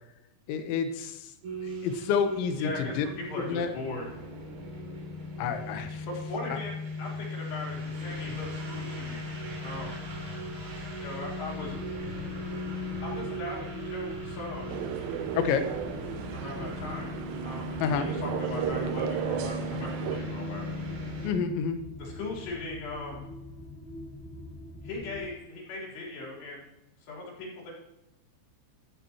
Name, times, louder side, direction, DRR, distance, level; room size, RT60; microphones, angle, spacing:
voice 1, 0.5-1.3 1.6-3.1 3.4-3.7 5.4-6.1 6.5-6.6 15.4-15.7 17.8-18.1 21.2-21.8, left 6 dB, 85° left, 8 dB, 3.5 m, -29 dB
sound 1, 1.4-21.3, left 1 dB, 55° right, 4.7 m, -37 dB
voice 2, 2.6-4.2 6.1-9.3 9.6-10.0 11.0-11.8 13.0-14.9 16.3-17.2 17.4-17.7 18.0-20.7 22.0-23.2 24.8-26.6 27.0-27.7, left 2 dB, 70° left, -3 dB, 5.9 m, -39 dB
sound 2, 11.6-25.3, left 1 dB, 40° left, 5.7 m, -45 dB
sound 3, 14.7-20.2, right 10 dB, 80° right, 2.7 m, -35 dB
14.0 x 12.5 x 3.0 m, 0.96 s
omnidirectional pair, 5.2 m